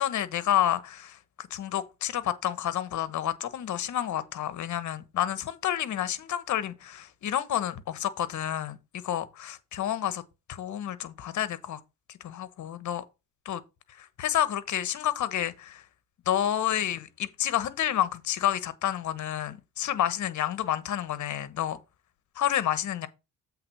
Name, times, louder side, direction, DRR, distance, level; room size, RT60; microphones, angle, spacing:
voice 1, 0.0-10.2 10.5-11.8 12.1-13.0 13.4-13.6 13.9-15.8 16.3-21.8 22.4-23.1, left 11 dB, 60° left, 1.1 m, -29 dB
7.9 x 3.6 x 6.0 m
supercardioid pair, 80°, 34 cm